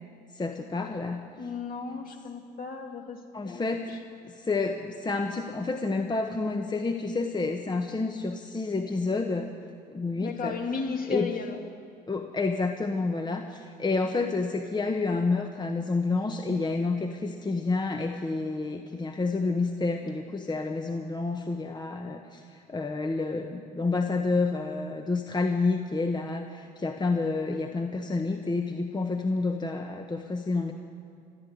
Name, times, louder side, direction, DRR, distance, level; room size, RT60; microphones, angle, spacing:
voice 1, 0.3-1.2 3.3-4.0 4.3-9.5 9.9-10.6 11.1-11.3 12.1-30.7, left 3 dB, 20° left, 4 dB, 1.2 m, -29 dB
voice 2, 1.4-3.6 3.9-4.0 10.2-11.6, left 5 dB, 45° left, 2 dB, 2.7 m, -34 dB
15.0 x 11.0 x 8.5 m, 2.5 s
hypercardioid pair, 65°, 20 cm